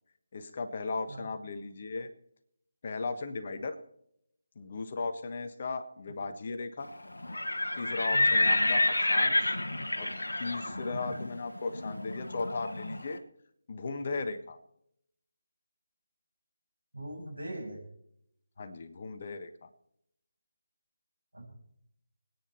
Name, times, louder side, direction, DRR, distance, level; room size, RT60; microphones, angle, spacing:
voice 1, 0.3-2.1 2.8-3.8 4.5-6.9 7.7-9.5 10.0-13.2 13.7-14.6 18.6-19.7, left 3 dB, 40° left, 9 dB, 1.3 m, -37 dB
Livestock farm animals working animals, 7.2-13.0, left 1 dB, 65° left, 1.7 m, -29 dB
voice 2, 16.9-17.8 21.3-21.5, right 1 dB, 75° right, 0 dB, 7.0 m, -41 dB
24.0 x 9.7 x 4.2 m, 0.71 s
figure-of-eight pair, 150°, 0 cm